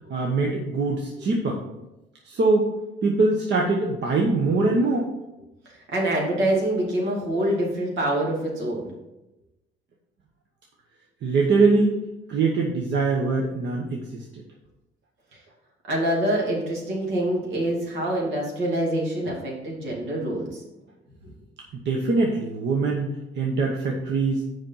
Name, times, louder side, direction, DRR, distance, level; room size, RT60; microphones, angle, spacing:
voice 1, 0.1-1.6 2.2-2.7 3.0-5.1 11.2-12.0 12.3-14.2 21.8-23.1 23.4-24.4, right 3 dB, 65° right, 0 dB, 1.1 m, -22 dB
voice 2, 5.6-8.9 15.3-15.4 15.9-20.6 21.2-21.3, right 1 dB, 85° right, -2 dB, 2.6 m, -26 dB
6.5 x 5.2 x 5.6 m, 0.96 s
cardioid pair, 90°, 20 cm